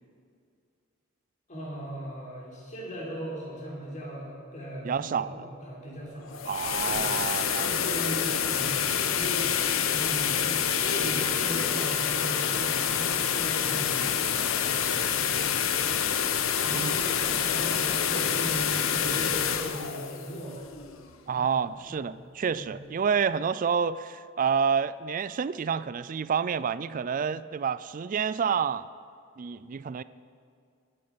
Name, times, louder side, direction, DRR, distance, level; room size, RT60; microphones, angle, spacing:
voice 1, 1.5-6.4 6.9-7.1 7.6-8.8 9.1-9.5 9.9-14.1 14.6-15.5 16.5-20.6 21.3-21.5 21.9-22.0 22.5-22.7, equal, 35° left, -5 dB, 4.5 m, -38 dB
voice 2, 4.8-5.5 6.5-7.7 16.7-17.0 21.3-28.9 29.4-30.0, right 6 dB, 40° right, 16 dB, 0.3 m, -29 dB
sound 1, 6.2-21.1, left 8 dB, 80° left, 0.9 m, -27 dB
21.5 x 9.7 x 5.1 m, 2.3 s
head